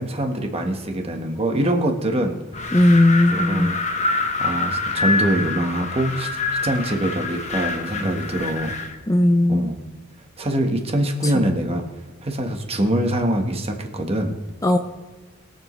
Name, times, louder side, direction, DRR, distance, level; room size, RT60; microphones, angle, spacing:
voice 1, 0.0-2.8 3.3-3.8 4.4-6.3 6.6-8.8 9.5-9.8 10.4-11.8 12.2-14.3, right 1 dB, 30° right, 4 dB, 1.3 m, -24 dB
Wind, 2.5-9.0, left 3 dB, 35° left, 1.1 m, -26 dB
voice 2, 2.7-3.7 9.1-9.7 11.3-11.4 14.6-14.8, left 1 dB, 15° left, 6 dB, 0.5 m, -17 dB
22.0 x 7.4 x 3.2 m, 1.3 s
head